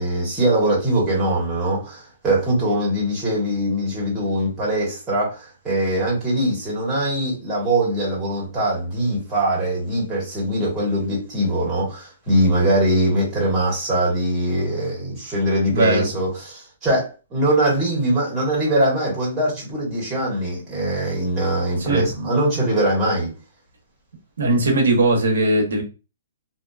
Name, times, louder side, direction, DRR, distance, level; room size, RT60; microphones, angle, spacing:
voice 1, 0.0-23.3, right 1 dB, 15° right, 1.2 m, -22 dB
voice 2, 15.7-16.1 21.8-22.1 24.4-25.8, right 2 dB, 85° right, 0.8 m, -19 dB
2.7 x 2.2 x 2.3 m
hypercardioid pair, 170°, 0 cm